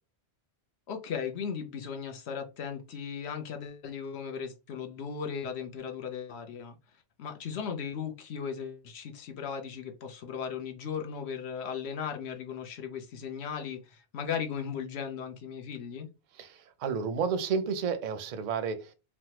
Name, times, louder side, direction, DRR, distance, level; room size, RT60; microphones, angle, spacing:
voice 1, 0.9-6.7 7.2-16.1, left 7 dB, 80° left, 0.9 m, -37 dB
voice 2, 16.4-18.9, right 6 dB, 55° right, 0.5 m, -31 dB
3.3 x 2.0 x 2.8 m
omnidirectional pair, 1.1 m